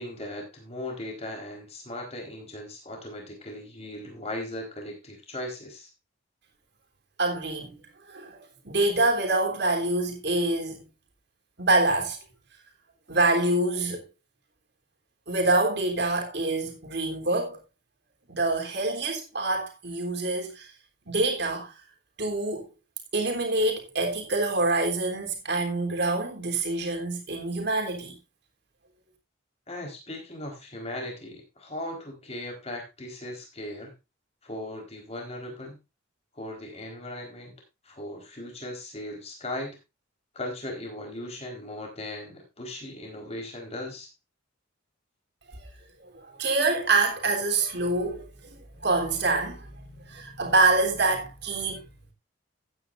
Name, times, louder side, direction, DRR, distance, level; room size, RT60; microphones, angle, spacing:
voice 1, 0.0-5.9 29.7-33.9 34.4-35.8 36.3-37.5 37.8-39.8 40.3-44.1, left 1 dB, 30° left, 4.3 m, -38 dB
voice 2, 7.2-7.7 8.1-10.9 11.6-12.2 13.1-14.0 15.3-17.6 18.3-20.7 21.1-21.7 22.2-22.6 23.1-28.2 45.5-45.6 46.0-51.8, right 2 dB, 55° right, 3.4 m, -26 dB
15.0 x 9.7 x 2.6 m
head